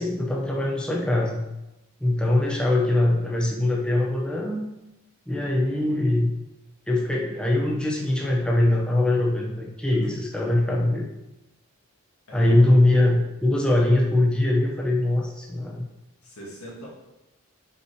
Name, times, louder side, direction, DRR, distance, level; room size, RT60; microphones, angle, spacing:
voice 1, 0.0-1.4 2.0-4.6 5.3-6.3 6.9-11.0 12.3-15.9, left 1 dB, 5° left, -2 dB, 0.9 m, -22 dB
voice 2, 12.3-12.7 16.2-16.9, equal, 80° left, -5 dB, 2.0 m, -41 dB
5.6 x 5.0 x 4.8 m, 0.95 s
head